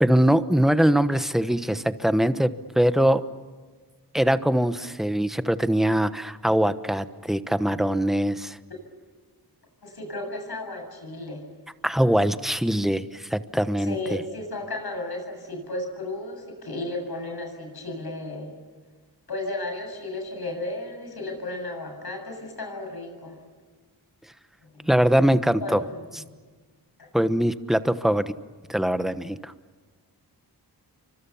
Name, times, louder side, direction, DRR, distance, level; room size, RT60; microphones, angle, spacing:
voice 1, 0.0-2.5 2.7-3.2 4.1-8.6 11.8-14.2 24.9-25.8 27.1-28.3 28.7-29.5, equal, ahead, 11 dB, 1.0 m, -22 dB
voice 2, 9.8-11.4 13.8-18.5 19.3-23.4 24.6-25.1 25.6-26.0 27.0-27.1, left 2 dB, 65° left, 3 dB, 7.8 m, -34 dB
29.5 x 24.5 x 7.1 m, 1.4 s
wide cardioid pair, 90°, 40 cm